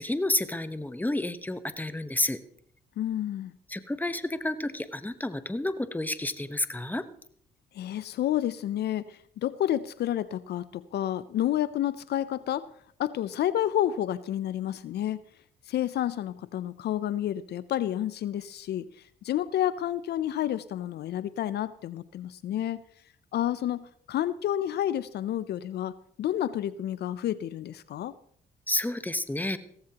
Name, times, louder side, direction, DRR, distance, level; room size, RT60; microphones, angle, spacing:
voice 1, 0.0-2.4 3.7-7.1 28.7-29.6, left 1 dB, 10° left, 12 dB, 1.0 m, -30 dB
voice 2, 3.0-3.5 7.7-12.7 13.0-15.2 15.7-22.8 23.3-28.1, left 11 dB, 65° left, 16 dB, 0.5 m, -30 dB
16.5 x 14.0 x 2.9 m, 0.65 s
supercardioid pair, 55°, 18 cm